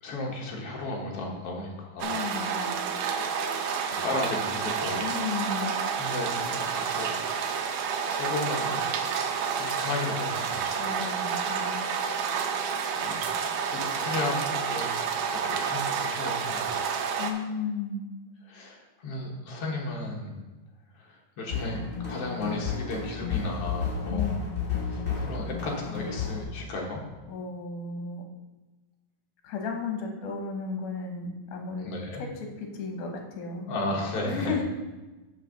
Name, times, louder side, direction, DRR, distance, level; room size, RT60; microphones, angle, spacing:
voice 1, 0.0-2.2 3.9-5.0 6.0-7.2 8.1-8.9 9.6-10.8 11.6-11.8 12.9-14.9 15.3-17.0 18.5-20.4 20.9-24.3 24.8-27.0 31.8-32.2 33.7-34.6, left 2 dB, 55° left, -1 dB, 1.9 m, -34 dB
voice 2, 2.0-2.9 5.0-5.7 10.8-11.8 17.2-18.0 24.1-24.4 27.3-28.2 29.4-33.7 34.2-34.6, left 5 dB, 70° left, 2 dB, 2.5 m, -34 dB
sound 1, 2.0-17.3, right 6 dB, 85° right, 2.2 m, -29 dB
sound 2, 21.5-26.4, left 6 dB, 30° left, 0.9 m, -32 dB
6.5 x 4.6 x 6.6 m, 1.1 s
omnidirectional pair, 3.7 m